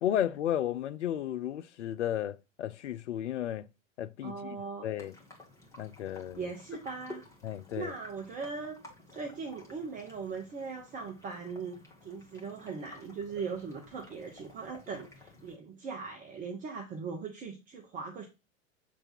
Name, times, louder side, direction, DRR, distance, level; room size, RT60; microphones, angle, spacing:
voice 1, 0.0-3.7 4.0-5.1 5.8-6.5 7.4-7.9, left 11 dB, 60° left, 0.5 m, -33 dB
voice 2, 4.2-4.9 6.3-7.2 7.8-8.8 9.1-18.3, right 5 dB, 20° right, 0.8 m, -39 dB
sound 1, 5.0-15.6, left 2 dB, 5° left, 1.6 m, -53 dB
7.3 x 3.3 x 4.3 m
figure-of-eight pair, 95°, 40 cm